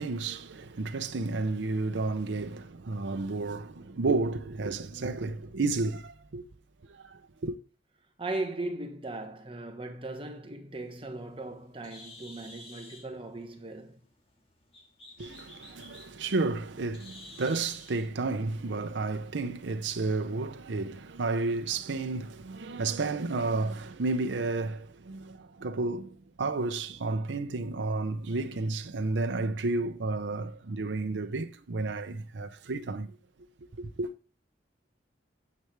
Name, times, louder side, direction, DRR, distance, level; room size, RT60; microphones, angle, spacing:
voice 1, 0.0-6.4 6.9-7.5 15.2-33.2 33.8-34.1, right 3 dB, 90° right, 0.7 m, -32 dB
voice 2, 8.2-14.0, right 2 dB, 30° right, 1.4 m, -38 dB
Bird, 10.8-18.1, left 1 dB, 35° left, 2.0 m, -52 dB
9.5 x 7.8 x 3.3 m
head